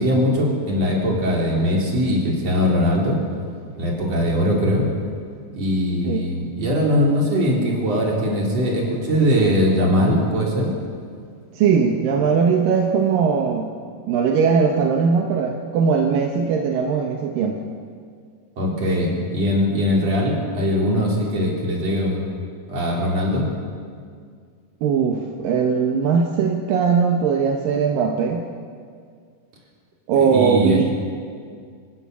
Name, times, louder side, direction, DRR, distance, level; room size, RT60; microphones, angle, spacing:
voice 1, 0.0-3.2 3.8-4.9 5.5-10.7 18.6-22.3 22.7-23.4 30.1-30.9, equal, 50° right, -2 dB, 4.9 m, -21 dB
voice 2, 11.5-13.7 14.1-17.7 24.8-28.4 30.1-30.9, right 6 dB, 80° right, 2 dB, 2.9 m, -20 dB
27.5 x 15.5 x 6.3 m, 2.1 s
omnidirectional pair, 4.0 m